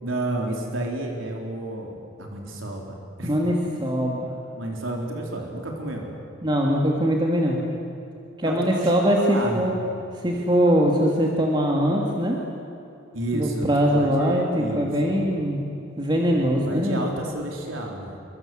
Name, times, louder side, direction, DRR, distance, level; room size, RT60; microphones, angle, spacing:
voice 1, 0.0-3.3 4.6-6.1 8.4-9.8 13.1-14.9 16.3-18.2, right 1 dB, 85° right, 0 dB, 4.1 m, -31 dB
voice 2, 3.2-4.3 6.4-7.6 8.4-9.7 10.1-12.4 13.3-15.6 16.0-17.0, equal, 25° right, -1 dB, 2.5 m, -22 dB
28.0 x 24.0 x 8.0 m, 2.8 s
head